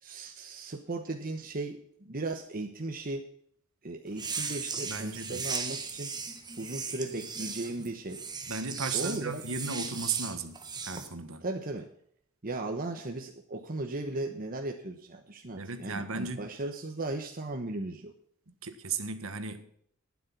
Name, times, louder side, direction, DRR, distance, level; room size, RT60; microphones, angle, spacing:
voice 1, 0.0-3.3 3.8-6.1 6.6-8.2 8.9-9.4 11.4-11.9 12.4-18.1, right 2 dB, 45° right, 1.1 m, -36 dB
sound 1, 4.1-11.1, right 5 dB, 20° right, 1.5 m, -37 dB
voice 2, 4.8-5.4 8.5-11.4 15.5-16.5 18.5-19.6, right 5 dB, 70° right, 1.6 m, -36 dB
12.0 x 9.5 x 5.9 m
head